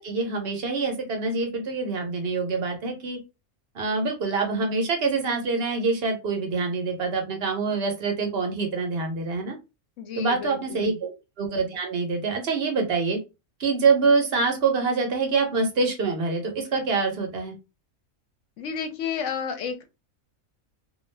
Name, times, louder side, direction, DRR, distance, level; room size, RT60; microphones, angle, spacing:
voice 1, 0.0-3.2 3.7-9.6 10.2-11.1 11.4-13.2 13.6-17.6, right 4 dB, 55° right, 3 dB, 0.8 m, -25 dB
voice 2, 10.0-11.0 18.6-19.8, left 6 dB, 65° left, 6 dB, 0.9 m, -31 dB
2.3 x 2.3 x 3.2 m, 0.27 s
omnidirectional pair, 1.5 m